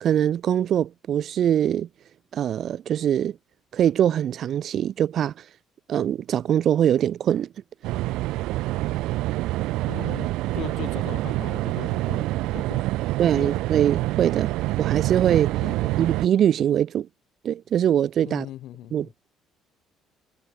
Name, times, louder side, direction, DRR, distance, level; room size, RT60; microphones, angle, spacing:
voice 1, 0.0-1.9 2.3-3.4 3.7-5.3 5.9-7.5 13.2-14.5 14.8-15.5 16.0-17.1 17.4-18.5 18.9-19.3, right 10 dB, 50° right, 0.3 m, -22 dB
sound 1, 7.8-16.3, right 18 dB, 85° right, 0.7 m, -26 dB
voice 2, 9.9-13.6 15.6-16.1 18.2-19.1, left 14 dB, 65° left, 3.8 m, -39 dB
cardioid pair, 140°, 0 cm